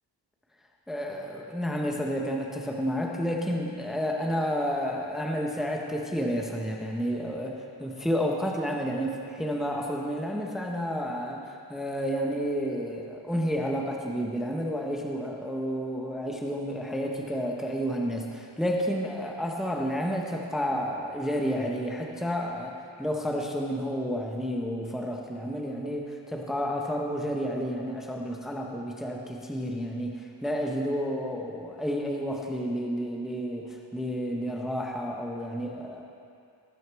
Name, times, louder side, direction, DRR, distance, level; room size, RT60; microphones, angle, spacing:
voice 1, 0.9-36.0, equal, ahead, 0 dB, 0.7 m, -30 dB
18.0 x 6.4 x 4.5 m, 2.4 s
wide cardioid pair, 175°, 42 cm